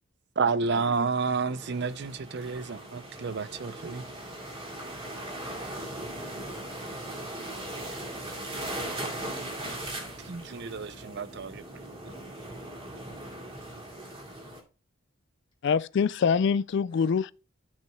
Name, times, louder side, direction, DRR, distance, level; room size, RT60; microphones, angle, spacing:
voice 1, 0.4-4.1 10.2-12.0, right 4 dB, 55° right, 0.5 m, -30 dB
sound 1, 1.5-14.6, right 1 dB, 25° right, 2.4 m, -39 dB
voice 2, 5.7-9.7 15.9-16.2 16.9-17.2, left 1 dB, 25° left, 2.2 m, -57 dB
voice 3, 15.6-17.3, left 6 dB, 55° left, 0.3 m, -24 dB
14.5 x 6.1 x 2.3 m
head